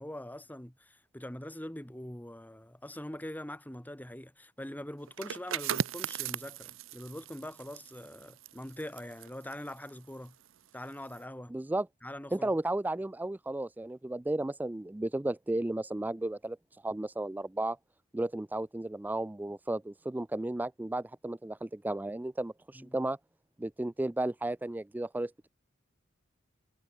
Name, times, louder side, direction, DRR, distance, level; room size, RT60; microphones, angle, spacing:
voice 1, 0.0-10.4 10.7-11.5 12.0-12.5 22.7-23.1, left 1 dB, 10° left, 1.7 m, -43 dB
sound 1, 5.1-10.6 10.9-11.2, right 8 dB, 75° right, 0.6 m, -38 dB
voice 2, 11.5-11.9 12.3-17.8 18.1-23.2 23.6-25.5, right 1 dB, 10° right, 0.3 m, -34 dB
head